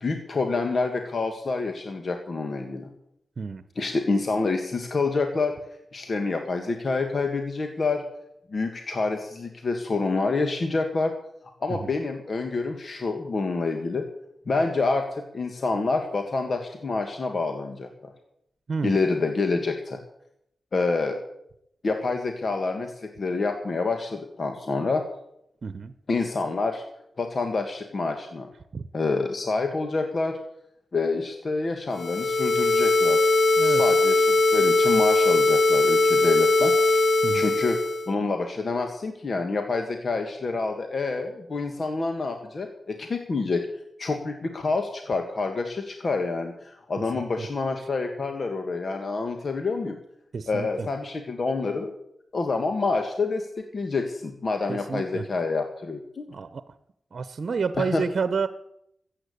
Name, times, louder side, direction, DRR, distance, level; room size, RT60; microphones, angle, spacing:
voice 1, 0.0-2.9 3.8-5.6 5.9-8.0 8.5-11.1 11.6-14.0 14.5-18.1 18.8-20.0 20.7-21.2 21.8-25.0 26.1-26.8 27.2-28.5 28.9-30.4 30.9-33.3 33.6-37.0 37.3-37.8 38.1-43.7 44.0-50.0 50.5-51.9 52.3-56.3 57.8-58.0, left 3 dB, 55° left, 5 dB, 1.9 m, -27 dB
voice 2, 25.6-25.9 28.7-28.8 33.6-33.8 37.2-37.5 47.1-47.5 50.3-50.9 54.7-55.2 56.3-56.6 57.1-58.5, right 5 dB, 60° right, 12 dB, 0.9 m, -30 dB
sound 1, 31.9-38.1, left 2 dB, 75° left, 1.0 m, -20 dB
14.5 x 8.7 x 8.6 m, 0.75 s
cardioid pair, 50°, 0 cm